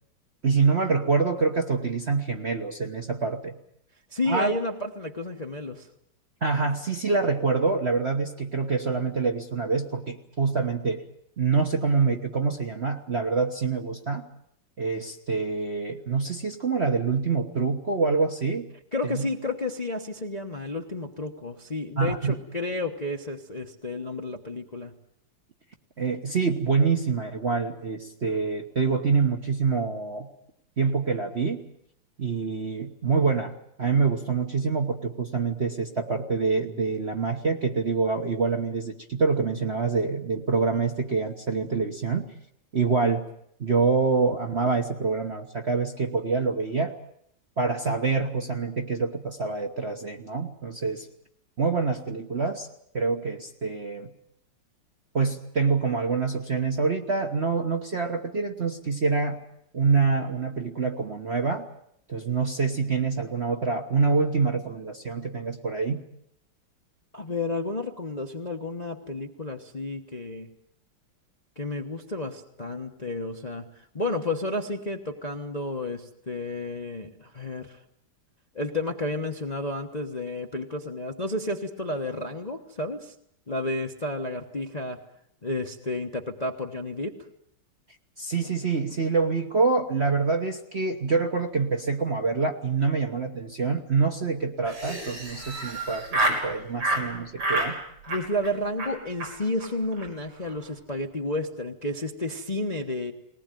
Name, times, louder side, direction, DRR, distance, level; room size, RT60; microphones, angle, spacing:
voice 1, 0.4-3.5 4.3-4.5 6.4-11.0 11.4-14.3 14.8-18.7 19.0-19.3 22.0-22.3 26.0-30.3 30.8-31.6 32.2-33.5 33.8-42.3 42.7-43.2 43.6-46.9 47.6-51.1 51.6-52.7 52.9-54.1 55.1-59.4 59.7-61.7 62.1-66.0 88.2-97.8, right 4 dB, 35° right, 4 dB, 1.1 m, -26 dB
voice 2, 4.1-5.9 18.9-24.9 67.1-70.5 71.6-77.8 78.5-83.1 83.5-85.0 85.4-87.1 98.1-103.1, left 2 dB, 25° left, 3 dB, 0.9 m, -31 dB
Laughter, 94.6-96.4 96.8-97.0 97.4-97.7 98.0-98.5 98.8-98.9 99.2-99.3 99.6-99.7 99.9-100.1 100.3-100.7, right 2 dB, 80° right, 6.5 m, -28 dB
20.5 x 19.5 x 9.2 m, 0.72 s
omnidirectional pair, 2.4 m